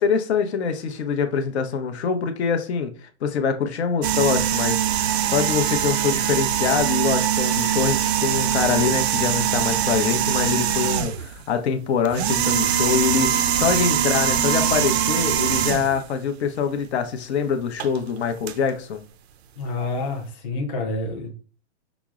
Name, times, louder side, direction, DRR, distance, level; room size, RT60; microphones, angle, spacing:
voice 1, 0.0-2.9 3.2-19.0, left 6 dB, 65° left, 0.7 m, -24 dB
sound 1, 4.0-11.3 12.0-16.0 17.8-18.0 18.5-18.6, right 10 dB, 65° right, 0.5 m, -22 dB
voice 2, 19.6-21.3, left 2 dB, 20° left, 0.5 m, -28 dB
6.0 x 2.0 x 2.4 m
hypercardioid pair, 160°, 35 cm